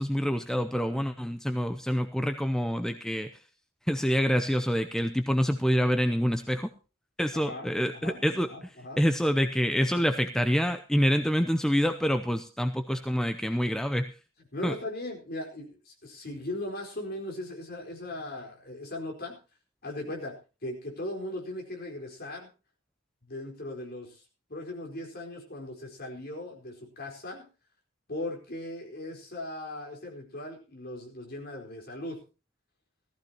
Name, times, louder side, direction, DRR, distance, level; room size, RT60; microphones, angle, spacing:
voice 1, 0.0-3.3 3.9-6.7 7.2-8.7 9.0-14.1 14.6-14.7, equal, 5° left, 8 dB, 0.6 m, -26 dB
voice 2, 7.3-7.7 7.9-8.2 8.5-9.0 14.5-19.4 19.8-20.3 20.6-22.5 23.3-24.2 24.5-27.4 28.1-32.2, left 1 dB, 50° left, 0 dB, 4.5 m, -38 dB
17.5 x 14.5 x 2.9 m, 0.32 s
head